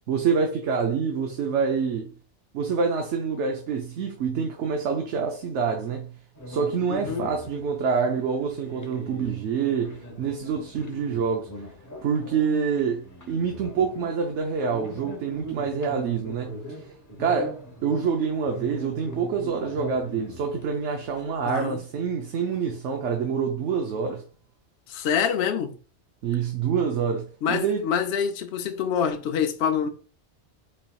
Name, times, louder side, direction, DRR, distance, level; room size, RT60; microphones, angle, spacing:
voice 1, 0.1-2.1 2.5-6.2 6.5-11.5 12.0-16.6 17.2-24.2 26.2-27.8, right 6 dB, 85° right, 0.9 m, -26 dB
sound 1, 6.3-21.6, right 1 dB, 20° left, 0.6 m, -41 dB
voice 2, 6.9-7.3 21.4-21.8 24.9-25.8 27.4-29.9, left 7 dB, 70° left, 0.8 m, -26 dB
4.1 x 3.3 x 2.3 m
omnidirectional pair, 1.2 m